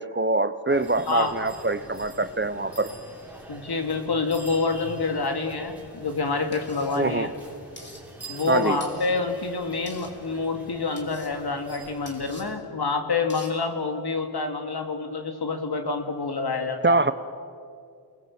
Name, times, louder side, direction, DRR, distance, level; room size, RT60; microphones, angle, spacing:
voice 1, 0.0-2.9 7.0-7.3 8.5-8.8 16.8-17.1, right 3 dB, 25° right, 13 dB, 0.8 m, -24 dB
sound 1, 0.7-12.6, right 1 dB, 5° right, 4.9 m, -44 dB
voice 2, 1.1-1.5 3.5-7.3 8.3-17.0, left 4 dB, 65° left, 5 dB, 2.6 m, -27 dB
sound 2, 6.5-7.0 7.8-8.0 8.8-9.1 9.9-10.1 11.0-11.3 12.1-12.4 13.3-13.5, left 1 dB, 25° left, 3.7 m, -45 dB
29.5 x 20.0 x 7.8 m, 2.4 s
wide cardioid pair, 95°, 41 cm